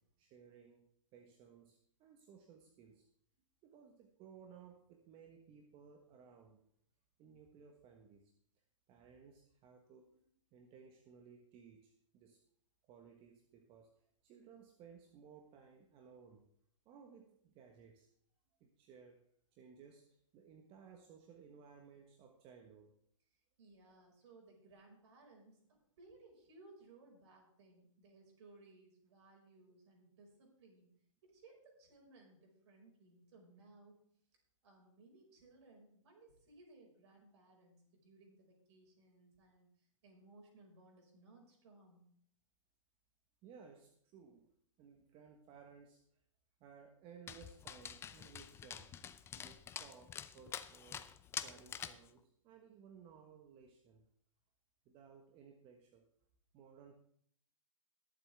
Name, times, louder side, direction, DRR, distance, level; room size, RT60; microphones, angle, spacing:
voice 1, 0.2-3.1 3.6-6.7 7.2-8.3 8.9-10.2 10.5-12.4 12.9-16.5 16.8-18.1 18.6-19.2 19.5-23.0 43.4-44.5 44.8-46.2 46.6-48.9 49.3-51.1 51.4-54.1 54.8-56.1 56.5-56.9, right 6 dB, 30° right, 3 dB, 1.4 m, -59 dB
voice 2, 23.6-30.9 31.2-34.0 34.6-42.1, right 2 dB, 55° right, 0 dB, 5.7 m, -62 dB
Dog, 47.3-52.1, left 8 dB, 15° left, 0.5 m, -47 dB
21.5 x 7.7 x 3.5 m, 0.66 s
figure-of-eight pair, 115°, 17 cm